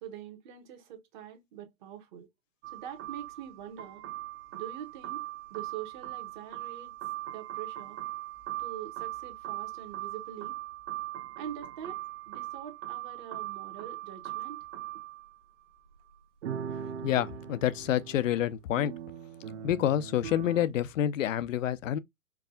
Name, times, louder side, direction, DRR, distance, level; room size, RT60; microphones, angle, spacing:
voice 1, 0.0-2.3 2.7-4.0 4.5-6.9 7.3-8.0 8.6-10.6 11.4-14.6, right 9 dB, 35° right, 1.1 m, -44 dB
sound 1, 2.6-15.4 16.1-16.2 16.4-20.7, right 12 dB, 55° right, 0.9 m, -40 dB
voice 2, 17.0-18.9 19.6-22.0, left 11 dB, 60° left, 0.6 m, -28 dB
4.7 x 2.4 x 3.6 m
hypercardioid pair, 135°, 43 cm